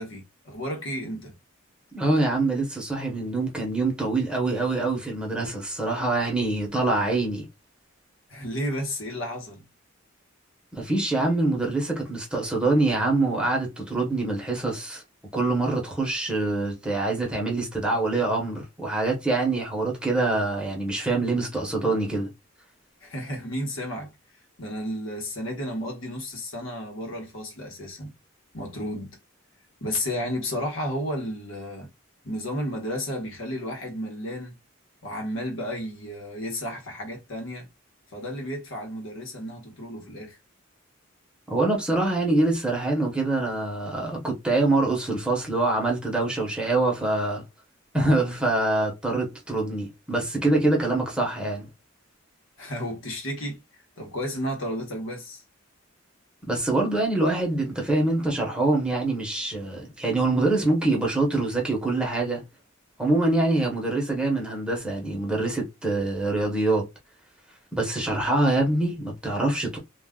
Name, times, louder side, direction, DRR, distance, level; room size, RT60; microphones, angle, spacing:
voice 1, 0.0-1.3 8.3-9.6 23.0-24.1 24.6-28.1 28.5-29.2 29.8-31.9 32.2-34.6 35.0-37.7 38.1-40.4 52.6-55.4, equal, 70° left, 1.0 m, -32 dB
voice 2, 1.9-7.5 10.7-15.0 15.3-22.3 41.5-47.4 47.9-51.7 56.5-62.4 63.0-66.9 67.7-69.8, right 2 dB, 5° right, 0.9 m, -25 dB
2.3 x 2.3 x 3.5 m
head